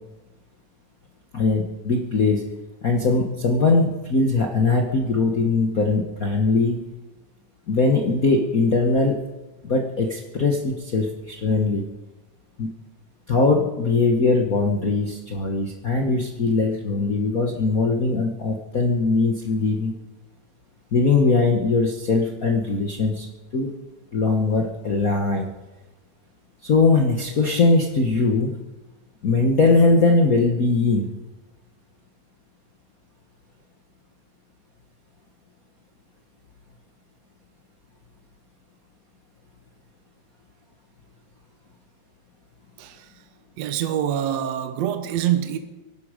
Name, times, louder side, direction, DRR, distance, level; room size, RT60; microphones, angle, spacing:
voice 1, 1.3-2.4 2.8-6.8 7.7-9.2 9.6-11.8 12.6-12.7 13.3-19.9 20.9-23.3 23.5-23.7 24.1-25.5 26.6-28.5 29.2-31.1, left 3 dB, 65° left, 0.8 m, -21 dB
voice 2, 42.8-43.1 43.6-45.6, right 10 dB, 70° right, 2.0 m, -25 dB
25.0 x 11.5 x 5.0 m
omnidirectional pair, 3.4 m